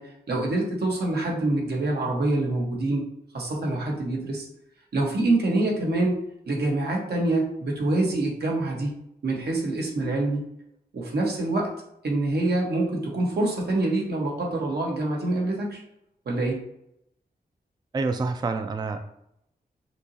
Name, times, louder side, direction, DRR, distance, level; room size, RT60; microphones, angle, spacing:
voice 1, 0.0-3.0 3.3-4.5 4.9-6.1 6.5-8.9 9.2-10.4 10.9-11.7 12.0-15.8 16.2-16.6, right 2 dB, 85° right, -1 dB, 1.3 m, -25 dB
voice 2, 17.9-19.0, right 3 dB, 25° right, 7 dB, 0.3 m, -27 dB
6.0 x 2.9 x 2.8 m, 0.77 s
wide cardioid pair, 110°, 16 cm